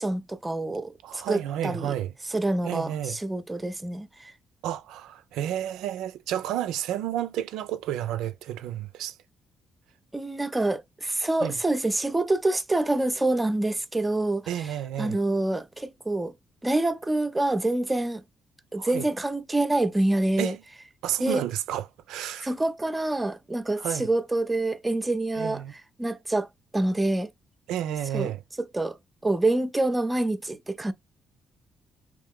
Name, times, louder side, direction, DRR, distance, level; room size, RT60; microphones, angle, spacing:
voice 1, 0.0-1.9 2.3-4.3 10.1-14.7 15.0-16.3 16.6-18.2 18.7-20.5 21.2-21.4 22.4-25.6 26.0-26.5 26.7-27.3 28.1-28.3 28.7-29.0 29.2-30.9, right 2 dB, 15° right, 0.6 m, -26 dB
voice 2, 1.0-2.1 2.6-3.2 4.6-9.2 11.4-11.5 14.5-15.2 18.8-19.1 20.4-20.6 21.0-22.5 23.8-24.1 25.3-25.7 27.7-28.4, right 11 dB, 90° right, 0.5 m, -31 dB
3.6 x 3.1 x 3.7 m
cardioid pair, 90°, 0 cm